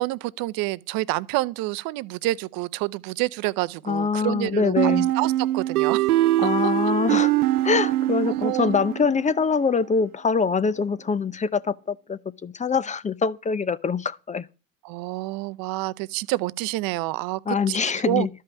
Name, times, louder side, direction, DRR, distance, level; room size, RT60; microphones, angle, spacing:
voice 1, 0.0-6.0 6.4-6.7 8.2-8.7 14.8-18.3, right 19 dB, 50° right, 0.8 m, -28 dB
voice 2, 3.9-5.1 6.4-7.3 7.6-14.5 17.5-18.3, left 5 dB, 15° left, 0.8 m, -24 dB
sound 1, 4.8-9.4, right 15 dB, 90° right, 0.7 m, -23 dB
13.0 x 5.6 x 9.0 m
hypercardioid pair, 95°, 44 cm